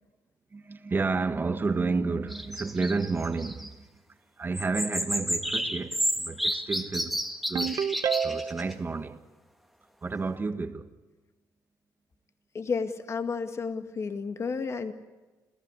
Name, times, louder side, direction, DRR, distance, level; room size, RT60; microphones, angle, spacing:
voice 1, 0.5-3.9 4.4-7.2 7.5-7.8 8.2-9.2 10.0-10.9, right 4 dB, 30° right, 1.6 m, -31 dB
sound 1, 2.3-3.7 4.5-8.7, equal, ahead, 1.6 m, -31 dB
Ringtone, 7.5-8.7, right 7 dB, 50° right, 0.9 m, -28 dB
voice 2, 12.5-14.9, left 5 dB, 40° left, 1.9 m, -31 dB
28.0 x 15.0 x 9.8 m
cardioid pair, 90°, 7 cm